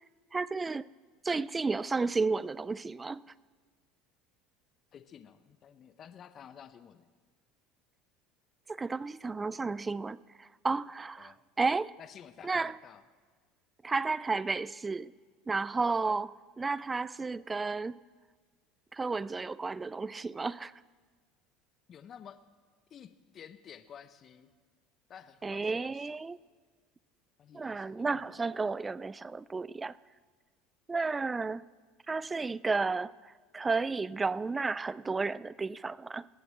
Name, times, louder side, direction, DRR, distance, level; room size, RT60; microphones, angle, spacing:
voice 1, 0.3-0.9 1.2-3.2 8.7-11.9 12.4-12.8 13.8-15.1 15.5-18.0 18.9-20.7 25.4-26.4 27.5-30.0 30.9-31.6 32.1-36.3, right 4 dB, 20° right, 0.4 m, -32 dB
voice 2, 4.9-7.1 11.2-11.4 12.0-13.0 16.0-16.1 21.9-22.4 22.9-24.5 25.1-26.2 27.4-28.6, left 8 dB, 40° left, 0.8 m, -52 dB
19.5 x 7.8 x 7.6 m
supercardioid pair, 100°, 0 cm